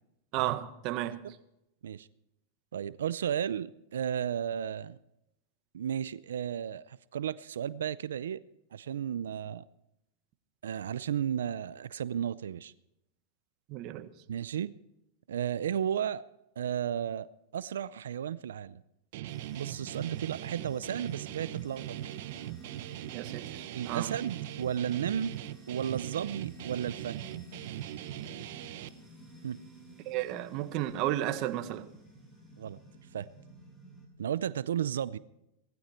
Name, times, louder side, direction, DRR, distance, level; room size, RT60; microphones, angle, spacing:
voice 1, 0.3-1.2 13.7-14.1 23.1-24.1 30.0-31.9, right 14 dB, 50° right, 1.4 m, -33 dB
voice 2, 2.7-5.0 5.7-8.4 8.7-9.6 10.6-12.7 14.3-14.7 15.3-16.2 16.6-18.8 19.5-22.2 23.7-25.4 25.7-27.2 29.4-29.6 32.6-32.8 33.1-33.3 34.2-35.2, right 9 dB, 90° right, 0.5 m, -33 dB
Guitar, 19.1-28.9, right 14 dB, 65° right, 0.8 m, -40 dB
sound 1, 19.3-34.1, right 1 dB, 10° left, 6.5 m, -52 dB
18.5 x 14.5 x 4.4 m
hypercardioid pair, 125°, 0 cm